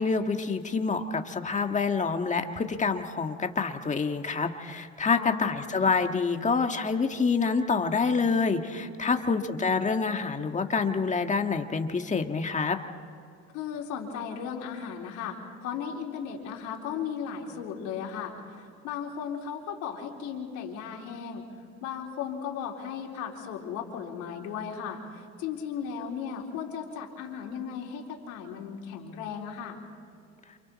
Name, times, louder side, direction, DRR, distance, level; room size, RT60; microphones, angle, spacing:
voice 1, 0.0-12.8, left 4 dB, 25° left, 5 dB, 1.7 m, -27 dB
voice 2, 5.1-5.5 9.0-9.4 13.5-21.4 21.8-29.8, left 7 dB, 85° left, -1 dB, 4.0 m, -36 dB
29.5 x 28.0 x 4.3 m, 2.4 s
cardioid pair, 110°, 29 cm